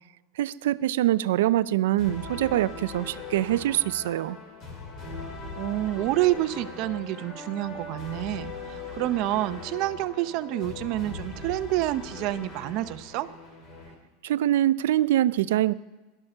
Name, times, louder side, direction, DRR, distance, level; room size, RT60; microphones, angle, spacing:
voice 1, 0.4-4.4 14.2-15.7, right 13 dB, 85° right, 16 dB, 0.4 m, -24 dB
sound 1, 2.0-13.9, left 3 dB, 35° left, 3.3 m, -40 dB
voice 2, 5.6-13.3, right 15 dB, 50° right, 13 dB, 0.7 m, -28 dB
17.0 x 12.0 x 6.7 m, 1.2 s
supercardioid pair, 150°, 0 cm